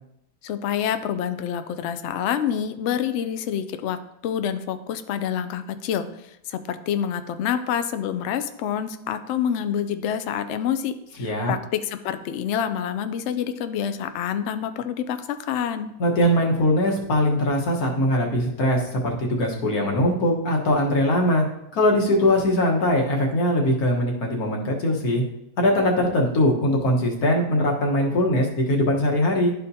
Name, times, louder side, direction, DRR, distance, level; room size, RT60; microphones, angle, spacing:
voice 1, 0.4-6.1 6.5-15.9, left 9 dB, 90° left, 10 dB, 0.6 m, -27 dB
voice 2, 11.2-11.5 16.0-21.5 21.7-25.2 25.6-29.5, left 1 dB, 65° left, -1 dB, 1.7 m, -21 dB
12.0 x 4.4 x 2.7 m, 0.82 s
omnidirectional pair, 1.8 m